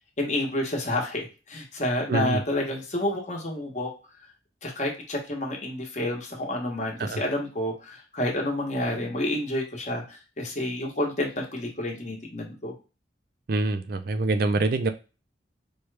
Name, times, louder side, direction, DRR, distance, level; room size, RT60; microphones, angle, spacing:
voice 1, 0.2-3.9 4.6-12.7, left 1 dB, 40° left, 1 dB, 1.0 m, -29 dB
voice 2, 2.1-2.4 7.0-7.2 13.5-14.9, right 2 dB, 55° right, 8 dB, 0.4 m, -25 dB
4.5 x 2.3 x 3.2 m, 0.31 s
head